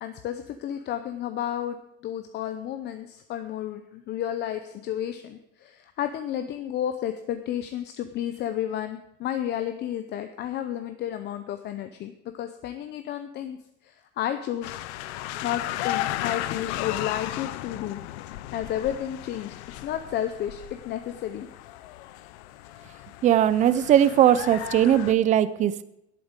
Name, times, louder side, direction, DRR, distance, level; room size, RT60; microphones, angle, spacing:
voice 1, 0.0-1.8 2.0-13.6 13.8-14.8 15.4-18.0 18.5-19.5 19.8-21.5, left 11 dB, 30° left, 9 dB, 0.6 m, -32 dB
sound 1, 14.6-25.1, left 15 dB, 65° left, 0.8 m, -35 dB
voice 2, 23.2-25.8, right 10 dB, 20° right, 15 dB, 0.5 m, -19 dB
11.0 x 8.6 x 8.0 m, 0.83 s
supercardioid pair, 160°, 36 cm